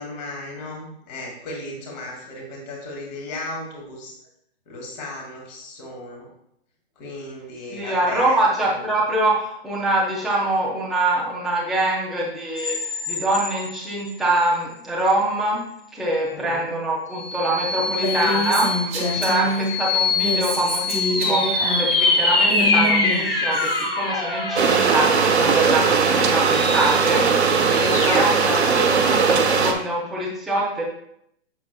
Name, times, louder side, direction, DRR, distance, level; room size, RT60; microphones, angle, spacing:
voice 1, 0.0-4.1 4.7-6.3 7.0-8.9 16.3-16.7 19.4-19.6 27.8-28.3, left 2 dB, 40° left, -1 dB, 2.2 m, -36 dB
voice 2, 7.7-12.8 13.1-15.6 15.9-30.8, right 1 dB, ahead, -6 dB, 0.3 m, -24 dB
sound 1, 12.6-14.5 15.0-15.1 17.1-28.8, left 3 dB, 65° left, 2.4 m, -25 dB
Female speech woman speaking, 17.9-19.7 20.1-23.9, equal, 20° right, 1.4 m, -26 dB
sound 2, 24.6-29.7, right 5 dB, 80° right, 1.1 m, -19 dB
7.8 x 6.9 x 2.2 m, 0.75 s
hypercardioid pair, 140°, 33 cm